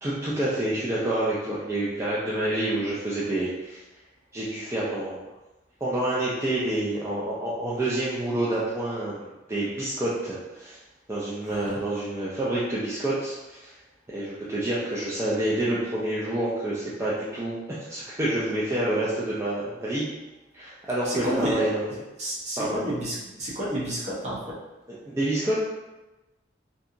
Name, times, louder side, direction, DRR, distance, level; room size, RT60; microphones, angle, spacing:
voice 1, 0.0-3.8 4.3-5.2 5.8-10.8 11.1-13.8 14.1-20.0 20.5-21.9 22.6-22.8 25.1-25.6, right 1 dB, 15° right, -8 dB, 0.3 m, -28 dB
voice 2, 11.5-11.8 21.0-21.6 22.2-24.4, equal, 40° right, -6 dB, 0.8 m, -30 dB
2.7 x 2.3 x 2.5 m, 1.1 s
head